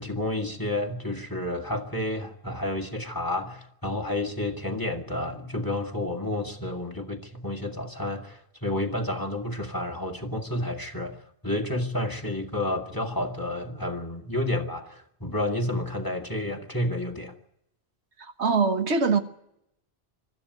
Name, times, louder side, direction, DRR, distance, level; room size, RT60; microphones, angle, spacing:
voice 1, 0.0-11.2 11.4-17.3, left 1 dB, 20° left, 2.0 m, -30 dB
voice 2, 18.2-19.2, right 4 dB, 85° right, 1.7 m, -23 dB
25.0 x 13.5 x 9.4 m
omnidirectional pair, 1.1 m